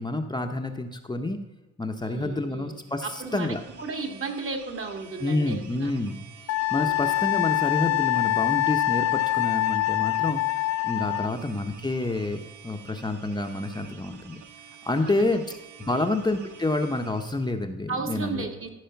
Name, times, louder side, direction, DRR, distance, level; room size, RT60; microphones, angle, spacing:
voice 1, 0.0-1.4 1.8-3.6 5.2-6.2 6.7-14.4 14.8-15.6 15.9-18.4, left 2 dB, 15° left, 4 dB, 0.8 m, -28 dB
voice 2, 2.0-5.9 6.7-7.2 11.0-11.3 15.0-15.2 15.9-16.1 17.9-18.7, right 3 dB, 45° right, 4 dB, 1.9 m, -35 dB
sound 1, 2.7-17.5, right 8 dB, 80° right, 1.0 m, -49 dB
Wind instrument woodwind instrument, 6.5-11.3, left 17 dB, 65° left, 0.4 m, -25 dB
14.0 x 4.9 x 5.8 m, 1.1 s
cardioid pair, 90°, 30 cm